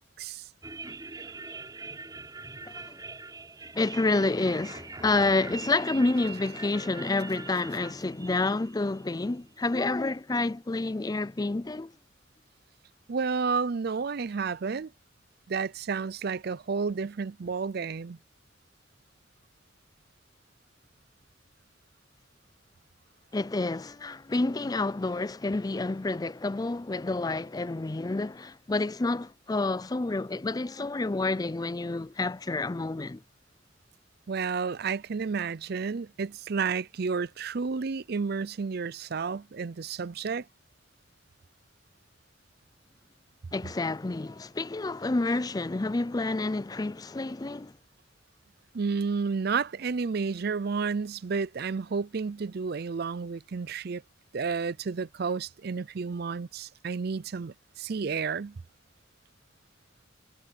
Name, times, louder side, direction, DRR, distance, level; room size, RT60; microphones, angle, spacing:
sound 1, 0.6-10.0, right 3 dB, 20° right, 3.8 m, -43 dB
voice 1, 2.6-3.0 3.7-11.9 23.3-33.2 43.5-47.8, left 2 dB, 20° left, 0.4 m, -29 dB
voice 2, 13.1-14.9 15.5-18.2 34.3-40.5 48.7-54.0 54.3-58.6, right 5 dB, 50° right, 0.5 m, -31 dB
head